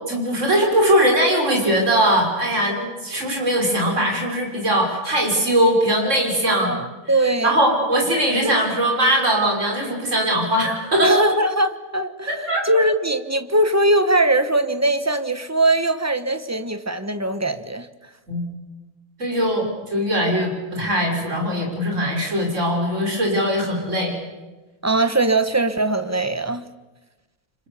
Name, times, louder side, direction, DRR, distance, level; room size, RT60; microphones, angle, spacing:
voice 1, 0.1-6.7 7.4-11.2 12.5-12.6 18.3-18.4 19.2-24.1, equal, 35° right, 1 dB, 6.0 m, -20 dB
voice 2, 6.6-7.5 8.4-8.6 11.0-12.4 12.6-17.9 24.8-26.6, right 1 dB, 15° right, 10 dB, 0.6 m, -21 dB
29.5 x 25.5 x 7.0 m, 1.2 s
omnidirectional pair, 2.3 m